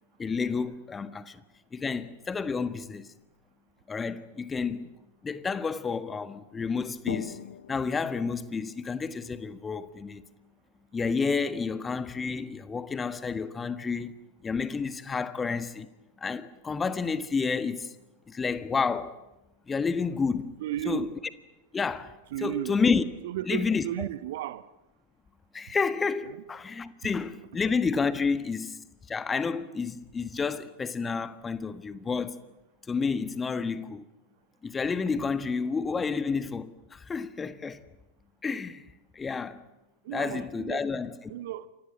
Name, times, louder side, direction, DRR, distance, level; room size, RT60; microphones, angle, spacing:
voice 1, 0.2-1.4 1.7-3.1 3.9-4.9 5.2-7.4 7.7-10.2 10.9-14.1 14.4-15.9 16.2-17.9 18.3-19.2 19.7-20.5 20.8-21.2 21.7-23.0 23.5-24.1 25.5-32.4 32.9-34.0 34.6-37.8 38.4-38.8 39.1-39.6 40.1-41.1, left 5 dB, 15° left, 1.5 m, -30 dB
sound 1, 3.2-3.5 5.3-5.4 5.6-5.7 6.8-10.2, left 9 dB, 60° left, 1.1 m, -44 dB
voice 2, 20.6-21.1 22.3-22.8 23.2-24.7 26.2-26.4 40.0-40.8 41.3-41.7, right 13 dB, 55° right, 0.9 m, -34 dB
29.0 x 25.0 x 7.6 m
figure-of-eight pair, 90°, 0 cm